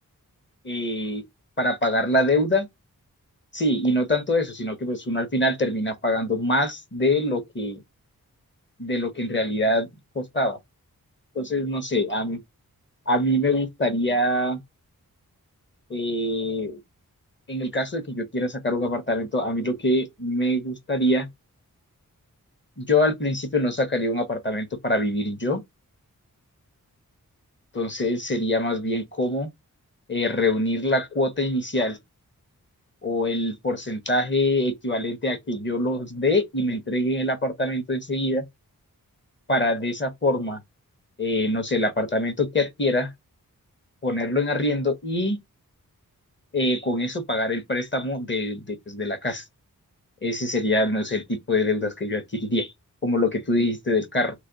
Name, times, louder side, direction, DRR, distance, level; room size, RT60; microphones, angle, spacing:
voice 1, 0.6-1.2 1.6-2.7 3.5-7.8 8.8-9.9 10.1-10.6 11.3-12.4 13.1-14.6 15.9-16.8 17.5-21.3 22.8-25.6 27.7-29.5 30.1-32.0 33.0-38.4 39.5-40.6 41.2-43.1 44.0-45.4 46.5-49.4 50.2-52.7 53.0-54.3, left 1 dB, 30° left, 0.9 m, -24 dB
3.1 x 2.2 x 3.8 m
cardioid pair, 55°, 35 cm